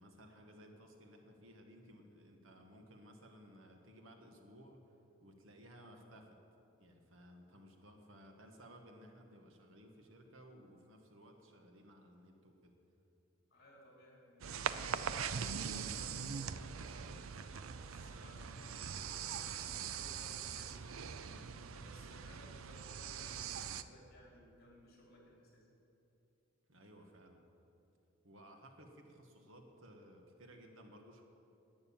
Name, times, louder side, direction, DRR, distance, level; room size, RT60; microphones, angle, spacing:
voice 1, 0.0-4.8 5.2-6.4 6.8-12.7 21.2-21.5 26.7-27.4 28.2-31.2, equal, 70° right, 3 dB, 1.7 m, -58 dB
voice 2, 13.5-20.9 21.4-25.7, left 1 dB, 50° left, -3 dB, 4.2 m, -61 dB
sound 1, 14.4-23.8, right 7 dB, 90° right, 0.6 m, -42 dB
11.5 x 9.5 x 8.9 m, 2.8 s
head